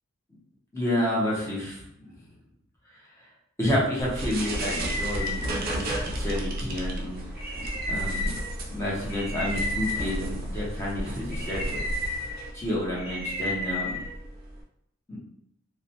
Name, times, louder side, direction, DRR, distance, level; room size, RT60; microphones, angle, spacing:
voice 1, 0.7-2.1 2.9-3.0 3.6-7.2 7.9-8.3 8.7-11.8 12.5-14.0 15.1-15.2, left 1 dB, 15° left, -6 dB, 0.8 m, -30 dB
sound 1, 4.0-14.6, equal, 50° right, 0.5 m, -31 dB
2.4 x 2.1 x 2.7 m, 0.77 s
head